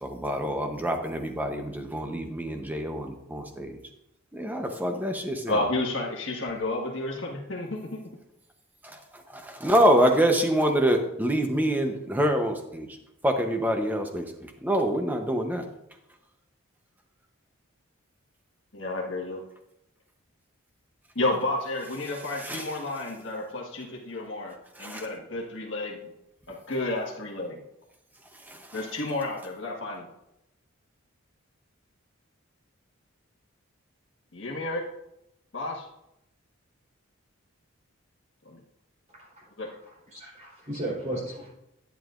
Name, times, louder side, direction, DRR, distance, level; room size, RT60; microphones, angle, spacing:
voice 1, 0.0-3.8 4.3-5.6 8.8-13.0 13.2-15.6 22.4-22.7 24.8-25.0 28.3-28.8, equal, 10° right, 4 dB, 0.8 m, -26 dB
voice 2, 5.5-8.0 18.7-19.4 21.1-26.1 26.5-27.6 28.7-30.1 34.3-34.8 35.5-35.9 38.4-38.6 39.6-39.7, left 2 dB, 60° left, -1 dB, 1.6 m, -31 dB
voice 3, 40.1-41.5, right 1 dB, 35° right, -4 dB, 3.7 m, -34 dB
11.0 x 9.3 x 2.5 m, 0.84 s
head